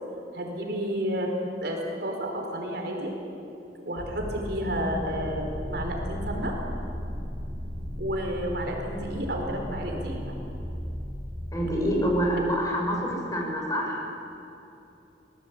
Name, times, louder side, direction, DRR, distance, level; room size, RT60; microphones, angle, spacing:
voice 1, 0.3-1.3 1.6-3.1 3.8-6.5 8.0-10.2, equal, 65° right, 1 dB, 4.6 m, -31 dB
sound 1, 4.0-12.5, equal, 75° left, 5.8 m, -41 dB
sound 2, 4.8-12.3, equal, ahead, 5.7 m, -37 dB
voice 2, 11.5-14.0, equal, 20° left, -1 dB, 6.4 m, -26 dB
27.0 x 19.5 x 8.7 m, 2.8 s
head